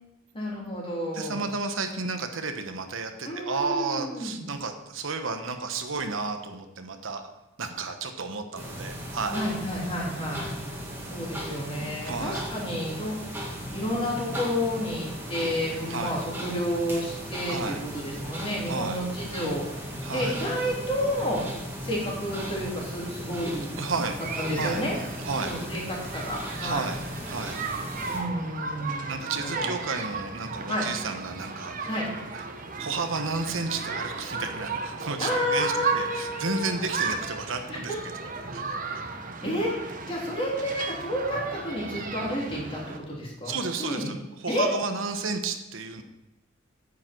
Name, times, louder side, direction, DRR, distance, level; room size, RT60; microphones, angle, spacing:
voice 1, 0.3-1.4 3.2-4.4 9.3-10.6 11.1-13.5 13.7-21.4 21.8-23.8 24.4-24.9 25.4-26.9 28.1-29.7 30.7-30.8 31.9-32.1 35.2-36.8 37.7-38.0 39.4-44.1 44.5-44.7, equal, 30° left, -4 dB, 3.4 m, -31 dB
voice 2, 1.1-7.2 7.6-9.4 12.0-12.4 15.9-16.1 17.5-17.8 18.7-19.0 20.0-20.4 23.8-24.2 24.6-24.8 25.2-25.5 26.6-27.0 27.2-27.6 29.1-31.8 32.3-32.4 32.8-37.9 38.5-38.6 43.4-46.0, right 4 dB, 80° right, 6 dB, 1.1 m, -32 dB
sound 1, 8.5-28.2, equal, 10° right, 2.0 m, -37 dB
sound 2, 24.2-43.0, right 4 dB, 45° right, 1.1 m, -35 dB
9.3 x 8.6 x 4.5 m, 0.96 s
head